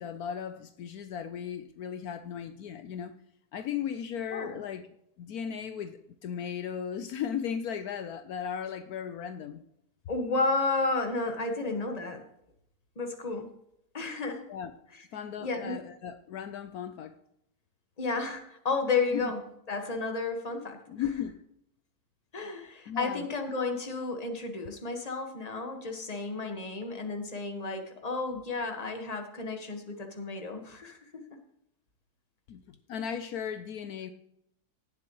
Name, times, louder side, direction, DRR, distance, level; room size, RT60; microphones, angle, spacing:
voice 1, 0.0-3.1 3.5-4.8 5.2-9.6 14.5-14.7 15.1-17.1 19.1-19.3 20.9-21.4 22.9-23.3 32.5-34.1, left 8 dB, 75° left, 1.2 m, -36 dB
voice 2, 10.1-12.2 12.9-13.5 13.9-14.5 15.4-15.8 18.0-19.4 19.7-20.8 22.3-31.4, left 3 dB, 25° left, 1.5 m, -32 dB
17.5 x 7.6 x 3.1 m
omnidirectional pair, 1.7 m